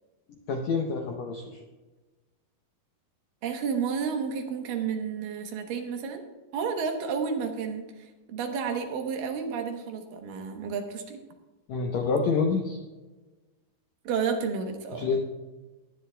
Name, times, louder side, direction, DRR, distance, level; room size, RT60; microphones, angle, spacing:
voice 1, 0.3-1.6 11.7-12.8 14.9-15.2, left 4 dB, 80° left, 2 dB, 1.6 m, -27 dB
voice 2, 3.4-6.2 6.5-11.2 14.0-15.1, right 6 dB, 70° right, 4 dB, 2.6 m, -31 dB
20.0 x 10.0 x 2.2 m, 1.2 s
omnidirectional pair, 4.2 m